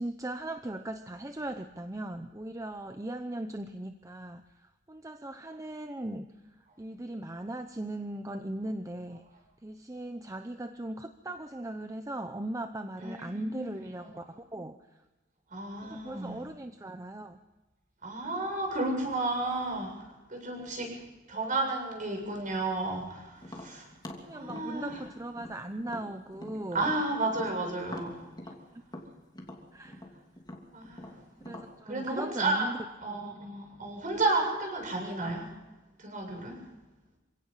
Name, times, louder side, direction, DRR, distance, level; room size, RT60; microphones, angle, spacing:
voice 1, 0.0-4.4 4.9-6.3 6.8-9.2 9.6-14.8 15.8-17.4 24.2-26.9 28.4-28.8 29.7-30.0 31.4-32.8, right 1 dB, 15° right, 7 dB, 0.8 m, -38 dB
voice 2, 13.0-13.9 15.5-16.4 18.0-20.9 21.3-23.9 24.3-25.0 26.7-28.3 30.7-31.1 31.9-32.7 33.0-35.5 36.0-36.6, right 2 dB, 45° right, 2 dB, 7.4 m, -32 dB
Tap, 23.4-27.0 27.3-31.7, left 1 dB, 20° left, 2.8 m, -45 dB
27.0 x 17.0 x 5.7 m, 1.1 s
head